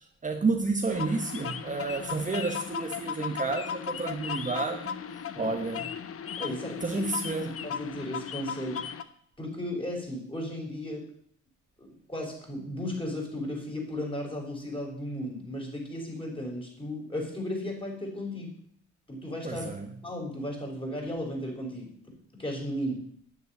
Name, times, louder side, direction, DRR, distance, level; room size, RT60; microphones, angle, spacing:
voice 1, 0.0-5.0 5.4-5.9 6.8-7.6 19.4-19.9, right 3 dB, 25° right, 5 dB, 1.2 m, -30 dB
sound 1, 0.9-9.0, left 7 dB, 50° left, 1.0 m, -36 dB
voice 2, 5.3-5.7 6.4-7.1 7.4-8.8 9.4-11.0 11.8-18.5 19.1-19.7 20.0-23.0, left 1 dB, 15° left, -1 dB, 6.2 m, -35 dB
9.7 x 7.9 x 9.5 m, 0.62 s
cardioid pair, 90°, 30 cm